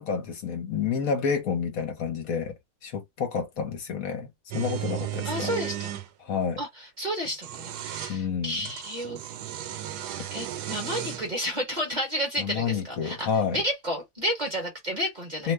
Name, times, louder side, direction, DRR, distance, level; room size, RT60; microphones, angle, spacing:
voice 1, 0.0-2.5 2.8-4.3 4.5-5.5 6.2-6.6 8.1-8.7 12.4-13.6 15.4-15.5, left 6 dB, 65° left, 1.2 m, -29 dB
sound 1, 4.5-6.1 7.2-8.2 8.6-11.3, right 11 dB, 85° right, 1.1 m, -35 dB
voice 2, 5.2-5.9 6.6-9.2 10.3-15.5, equal, 30° right, 1.2 m, -31 dB
2.9 x 2.1 x 3.3 m
omnidirectional pair, 1.6 m